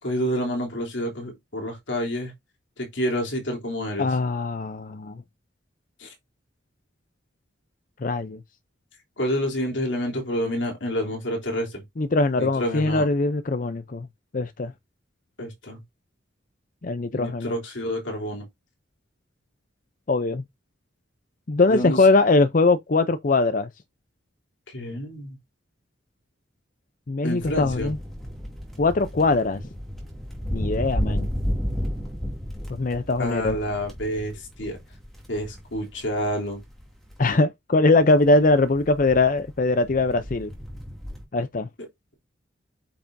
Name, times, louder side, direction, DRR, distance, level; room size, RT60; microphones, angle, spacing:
voice 1, 0.0-2.3 2.8-4.1 6.0-6.1 9.2-11.8 12.4-13.1 15.4-15.8 17.1-18.5 21.7-22.0 24.7-25.4 27.2-27.9 33.2-34.3 34.6-34.8 35.3-36.6, equal, 75° left, 3.2 m, -28 dB
voice 2, 4.0-5.2 8.0-8.4 12.0-14.1 14.3-14.7 16.8-17.5 20.1-20.4 21.5-23.7 27.1-28.0 28.8-29.6 30.5-31.3 32.7-33.6 37.2-40.5 41.3-41.7, left 3 dB, 45° left, 0.6 m, -21 dB
sound 1, 27.4-37.2 38.1-41.2, equal, ahead, 2.4 m, -33 dB
8.3 x 5.7 x 2.7 m
head